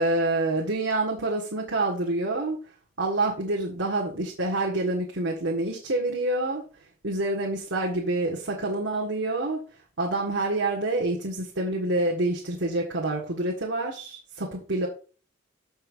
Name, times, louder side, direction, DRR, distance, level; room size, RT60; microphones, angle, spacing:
voice 1, 0.0-2.6 3.0-6.6 7.0-9.6 10.0-14.9, right 2 dB, 85° right, -2 dB, 1.7 m, -27 dB
14.5 x 5.7 x 2.6 m, 0.37 s
head